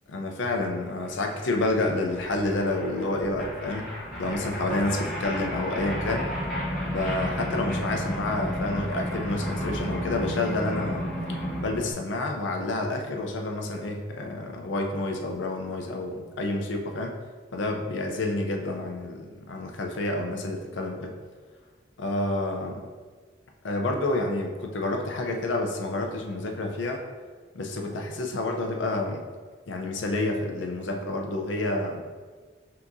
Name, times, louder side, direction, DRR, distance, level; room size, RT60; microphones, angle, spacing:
voice 1, 0.1-3.9 4.2-6.3 6.8-11.1 11.6-17.1 17.5-21.2 22.0-22.8 23.6-27.0 27.5-29.2 29.7-32.0, left 2 dB, 85° left, 2 dB, 0.5 m, -29 dB
sound 1, 0.8-0.9 1.0-11.9, equal, ahead, 1.4 m, -33 dB
5.9 x 2.9 x 2.6 m, 1.4 s
head